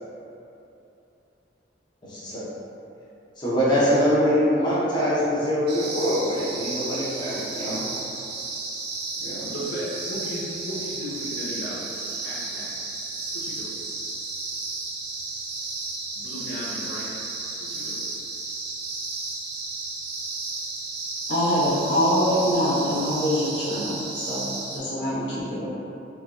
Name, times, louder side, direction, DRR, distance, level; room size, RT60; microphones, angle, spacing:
voice 1, 2.0-2.4 3.4-7.8 9.2-9.5, equal, 25° left, -10 dB, 0.6 m, -23 dB
sound 1, 5.7-24.8, right 3 dB, 60° right, 0.4 m, -33 dB
voice 2, 9.3-12.9 13.3-13.7 16.2-17.2 17.6-18.0, equal, 90° left, -8 dB, 0.5 m, -36 dB
voice 3, 21.3-25.7, equal, 75° left, -10 dB, 1.0 m, -24 dB
3.3 x 2.2 x 2.4 m, 2.8 s
head